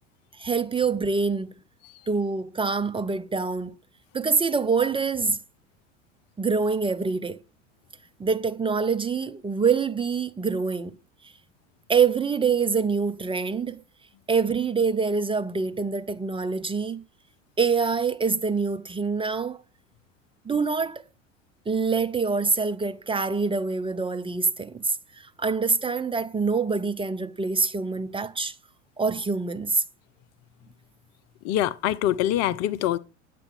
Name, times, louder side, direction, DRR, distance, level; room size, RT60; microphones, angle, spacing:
voice 1, 0.4-1.5 2.1-3.7 4.1-5.4 6.4-7.4 8.2-10.9 11.9-13.8 14.3-17.0 17.6-19.6 20.4-21.0 21.7-28.5 29.0-29.8, right 5 dB, 15° right, 0.8 m, -25 dB
voice 2, 31.4-33.0, left 12 dB, 40° left, 0.8 m, -24 dB
10.0 x 8.4 x 6.2 m
figure-of-eight pair, 80°, 38 cm